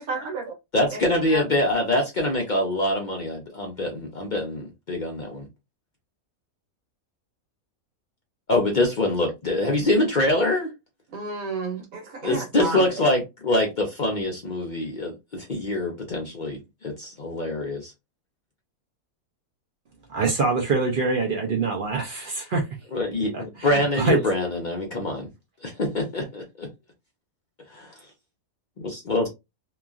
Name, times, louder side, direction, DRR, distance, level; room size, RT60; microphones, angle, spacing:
voice 1, 0.0-0.5 0.9-1.0 1.3-1.4 11.1-12.8, right 3 dB, 75° right, 1.3 m, -31 dB
voice 2, 0.7-5.5 8.5-10.7 12.2-17.9 22.9-25.3 25.6-26.7 27.7-27.9 28.8-29.3, left 1 dB, 50° left, 0.5 m, -25 dB
voice 3, 20.1-22.7 23.3-24.2, right 4 dB, 60° right, 0.5 m, -24 dB
2.9 x 2.3 x 2.3 m
omnidirectional pair, 1.5 m